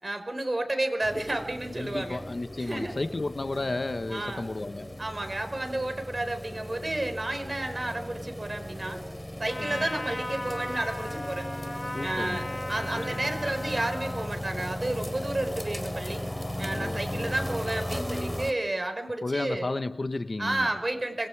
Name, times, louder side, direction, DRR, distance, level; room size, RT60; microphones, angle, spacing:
voice 1, 0.0-2.2 2.6-3.0 4.1-4.5 5.0-9.0 9.4-11.5 12.0-16.3 16.6-19.7 20.4-21.3, right 1 dB, 45° right, 4.9 m, -31 dB
sound 1, 1.0-18.5, left 1 dB, 15° left, 4.0 m, -36 dB
voice 2, 1.8-5.0 9.6-9.9 11.9-12.5 16.7-17.3 19.2-20.7, left 2 dB, 65° left, 1.2 m, -33 dB
Trumpet, 9.5-14.4, left 1 dB, 30° left, 4.5 m, -37 dB
26.0 x 22.0 x 4.8 m
wide cardioid pair, 40°, 0 cm